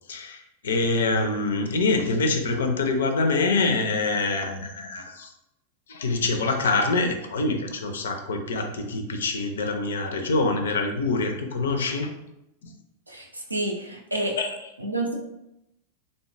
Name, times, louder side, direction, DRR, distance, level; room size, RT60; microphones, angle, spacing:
voice 1, 0.1-5.3 5.9-12.1 12.6-12.7 14.4-14.5, left 3 dB, 65° left, 6 dB, 0.4 m, -25 dB
voice 2, 13.1-14.4 14.8-15.1, right 2 dB, 85° right, 0 dB, 0.5 m, -29 dB
3.4 x 2.2 x 2.5 m, 0.85 s
figure-of-eight pair, 90°, 0 cm